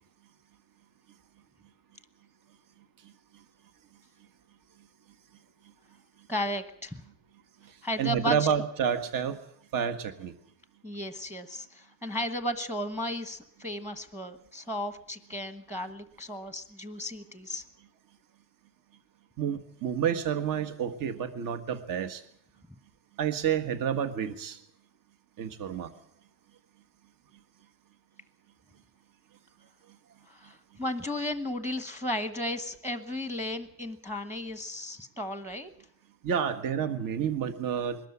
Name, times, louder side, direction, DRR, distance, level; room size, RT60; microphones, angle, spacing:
voice 1, 6.3-7.0 7.8-8.4 10.8-17.6 30.3-35.7, left 1 dB, 5° right, 9 dB, 1.2 m, -34 dB
voice 2, 8.0-9.4 9.7-10.3 19.4-22.2 23.2-24.6 25.4-25.9 36.2-38.0, right 8 dB, 50° right, 10 dB, 1.7 m, -29 dB
22.0 x 13.5 x 9.9 m, 0.69 s
cardioid pair, 135°, 41 cm